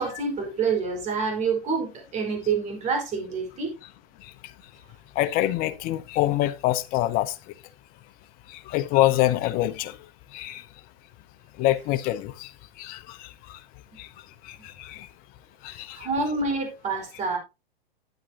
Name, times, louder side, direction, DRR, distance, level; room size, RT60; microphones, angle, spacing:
voice 1, 0.0-3.7 15.7-17.4, right 4 dB, 25° right, 5.0 m, -27 dB
voice 2, 5.2-7.3 8.5-10.0 10.3-10.6 11.6-12.5 12.8-13.6 14.0-14.1 14.5-15.1 15.6-16.0, left 14 dB, 30° left, 0.9 m, -25 dB
11.5 x 9.0 x 2.9 m
hypercardioid pair, 130°, 30 cm